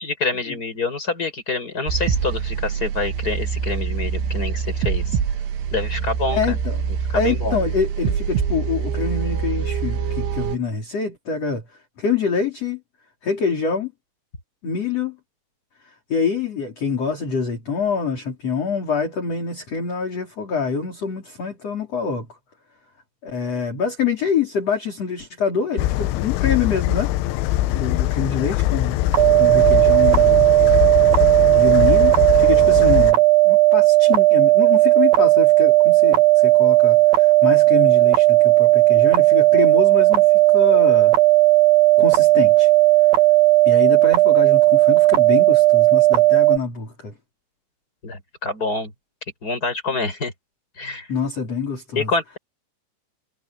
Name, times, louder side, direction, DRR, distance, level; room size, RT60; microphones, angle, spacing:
voice 1, 0.0-5.0 5.7-6.6 7.1-7.5 48.0-48.9 49.4-50.3 50.8-51.1 51.9-52.4, left 3 dB, 20° left, 6.4 m, -26 dB
sound 1, 1.9-10.6, right 7 dB, 75° right, 4.6 m, -25 dB
voice 2, 6.3-6.8 7.2-11.6 12.0-12.8 13.2-13.9 14.6-15.2 15.8-22.4 23.2-27.1 27.7-29.0 29.4-30.5 31.6-41.2 42.0-42.7 43.7-47.1 50.8-52.1, left 5 dB, 35° left, 4.4 m, -25 dB
sound 2, 25.8-33.1, left 15 dB, 90° left, 3.3 m, -22 dB
sound 3, 29.1-46.6, right 22 dB, 55° right, 4.2 m, -15 dB
omnidirectional pair, 5.6 m